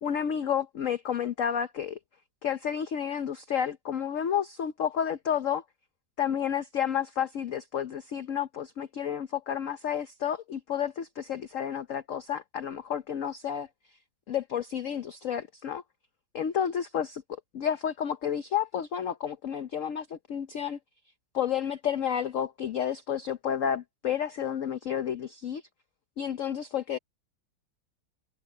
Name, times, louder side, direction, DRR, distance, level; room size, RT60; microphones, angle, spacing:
voice 1, 0.0-2.0 2.4-5.6 6.2-13.7 14.3-15.8 16.3-20.8 21.3-25.6 26.2-27.0, left 8 dB, 55° left, 0.9 m, -31 dB
omnidirectional pair, 2.0 m